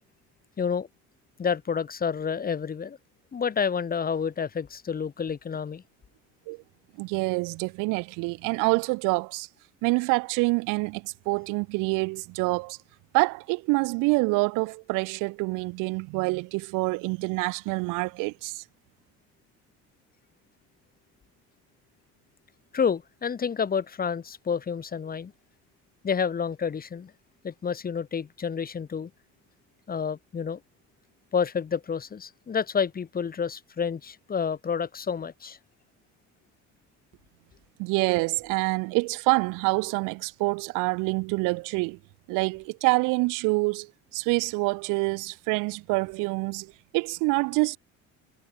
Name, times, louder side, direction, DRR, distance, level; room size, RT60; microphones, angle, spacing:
voice 1, 0.6-0.9 1.4-3.0 3.3-5.8 22.7-25.3 26.0-27.1 27.4-29.1 29.9-30.6 31.3-35.6, left 6 dB, 30° left, 5.8 m, -29 dB
voice 2, 7.0-9.5 9.8-12.8 13.1-18.6 37.8-42.0 42.3-47.8, right 27 dB, 90° right, 1.1 m, -26 dB
cardioid pair, 135°, 30 cm